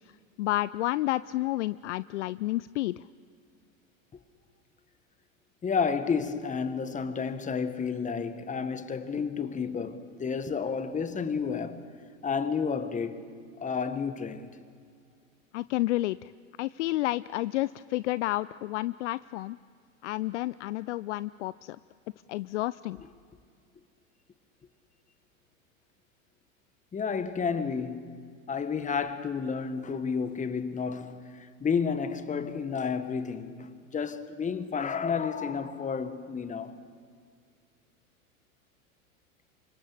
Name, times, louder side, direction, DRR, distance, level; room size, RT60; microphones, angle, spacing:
voice 1, 0.4-3.0 15.5-16.3 16.6-19.6 20.0-21.8 22.3-23.0, left 17 dB, 55° left, 0.6 m, -30 dB
voice 2, 5.6-11.9 12.2-13.3 13.6-14.5 26.9-36.8, left 6 dB, 15° left, 1.6 m, -31 dB
29.0 x 25.0 x 7.2 m
figure-of-eight pair, 90°, 42 cm